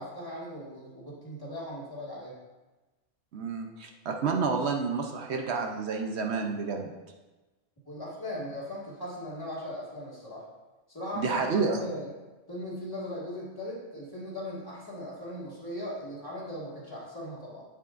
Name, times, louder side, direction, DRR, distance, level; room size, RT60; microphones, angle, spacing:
voice 1, 0.0-2.3 7.9-10.5 10.9-11.4 11.8-12.1 12.5-17.6, left 1 dB, 20° left, -6 dB, 1.9 m, -38 dB
voice 2, 3.3-6.9 11.2-11.8, right 4 dB, 65° right, 3 dB, 0.9 m, -29 dB
8.3 x 7.4 x 2.5 m, 1.2 s
omnidirectional pair, 1.2 m